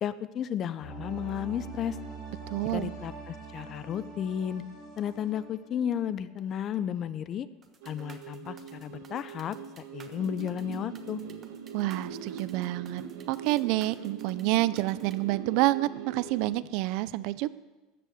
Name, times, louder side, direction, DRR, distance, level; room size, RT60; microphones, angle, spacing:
voice 1, 0.0-2.0 2.7-4.6 5.0-7.5 7.8-9.6 9.9-11.2, left 9 dB, 30° left, 15 dB, 0.5 m, -33 dB
sound 1, 0.8-6.5 6.7-6.8, right 4 dB, 55° left, 4.5 m, -44 dB
voice 2, 2.5-2.9 11.7-13.0 13.3-17.5, right 18 dB, 55° right, 17 dB, 0.4 m, -28 dB
sound 2, 7.6-15.2, right 6 dB, 25° right, 1.1 m, -55 dB
sound 3, 7.8-16.5, right 7 dB, 90° right, 1.3 m, -42 dB
13.0 x 7.6 x 7.9 m, 1.2 s
cardioid pair, 160°, 0 cm